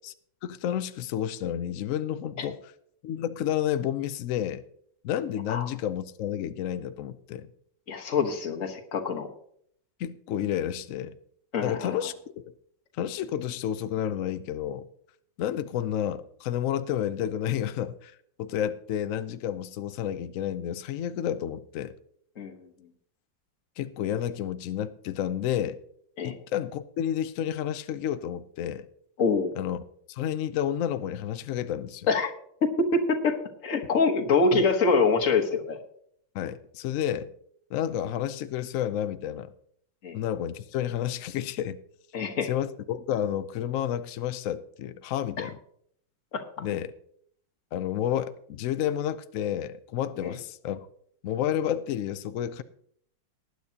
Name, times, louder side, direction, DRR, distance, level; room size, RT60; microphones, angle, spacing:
voice 1, 0.4-2.6 3.0-4.6 5.0-7.5 10.0-11.2 11.6-12.1 12.5-12.6 13.0-14.9 15.4-18.1 18.4-21.9 23.8-25.8 26.2-28.9 29.6-29.8 30.1-32.1 34.5-34.7 36.3-37.3 37.7-39.5 40.1-41.8 42.4-45.6 46.6-46.9 47.7-50.9 51.2-52.6, left 10 dB, 85° left, 0.7 m, -30 dB
voice 2, 7.9-9.3 11.5-11.9 22.4-22.5 26.2-26.4 29.2-29.5 32.1-32.3 32.6-33.4 33.6-35.8 40.0-40.2 42.1-42.5 45.4-45.5 46.3-46.4 50.2-50.3, left 4 dB, 45° left, 1.5 m, -25 dB
19.0 x 9.5 x 2.8 m
omnidirectional pair, 2.0 m